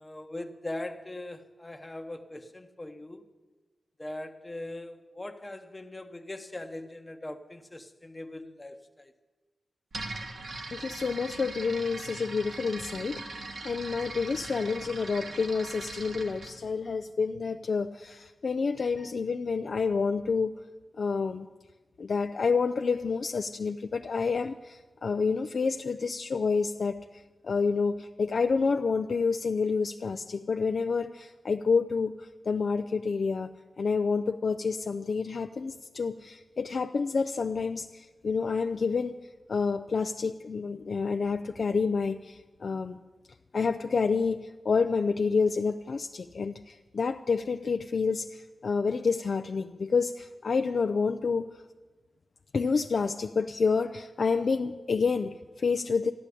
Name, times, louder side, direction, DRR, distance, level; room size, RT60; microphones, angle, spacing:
voice 1, 0.0-3.2 4.0-9.1 18.8-19.1, left 1 dB, 20° left, 7 dB, 0.9 m, -41 dB
sound 1, 9.9-16.5, right 2 dB, 75° right, 1.6 m, -40 dB
voice 2, 10.7-20.6 21.0-21.5 22.0-27.0 27.4-33.5 33.8-39.2 39.5-43.0 43.5-44.4 44.6-51.5 52.5-56.1, left 5 dB, 65° left, 6 dB, 0.4 m, -28 dB
14.0 x 10.5 x 8.4 m, 1.2 s
wide cardioid pair, 105°, 0 cm